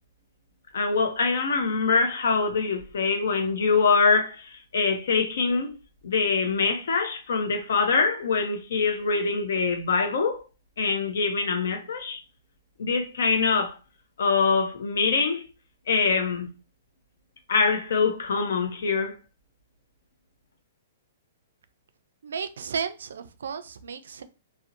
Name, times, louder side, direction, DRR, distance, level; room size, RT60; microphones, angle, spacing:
voice 1, 0.7-5.7 6.0-10.5 10.8-12.2 12.8-13.8 14.2-15.5 15.9-16.5 17.5-19.2, left 4 dB, 75° left, 0.5 m, -24 dB
voice 2, 22.2-24.2, right 6 dB, 85° right, 0.3 m, -33 dB
2.6 x 2.0 x 2.5 m
hypercardioid pair, 155°, 0 cm